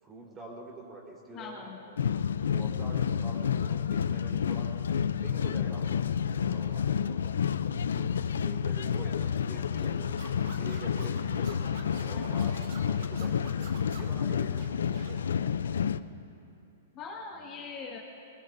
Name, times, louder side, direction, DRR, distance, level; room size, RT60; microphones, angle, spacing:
voice 1, 0.0-2.0 2.4-4.7 5.2-7.4 7.9-10.2 10.4-13.4 13.9-14.7 17.3-17.5, right 2 dB, 20° right, -2 dB, 3.8 m, -46 dB
voice 2, 1.3-1.8 9.5-10.0 12.1-12.5 15.4-15.5 16.9-18.0, left 5 dB, 35° left, -2 dB, 1.8 m, -43 dB
sound 1, 2.0-16.0, left 7 dB, 85° left, 0.4 m, -30 dB
Scratching (performance technique), 10.2-14.2 14.6-15.2, right 5 dB, 65° right, 2.3 m, -48 dB
21.0 x 21.0 x 2.6 m, 2.8 s
hypercardioid pair, 130°, 0 cm